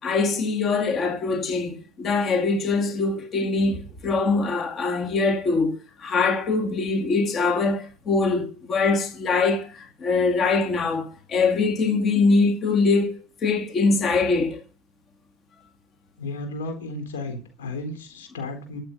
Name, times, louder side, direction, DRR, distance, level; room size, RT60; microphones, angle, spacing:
voice 1, 0.0-14.6, left 3 dB, 35° left, 2.2 m, -23 dB
voice 2, 16.2-18.8, left 2 dB, 90° left, 4.0 m, -33 dB
13.5 x 7.7 x 5.3 m
hypercardioid pair, 95°, 0 cm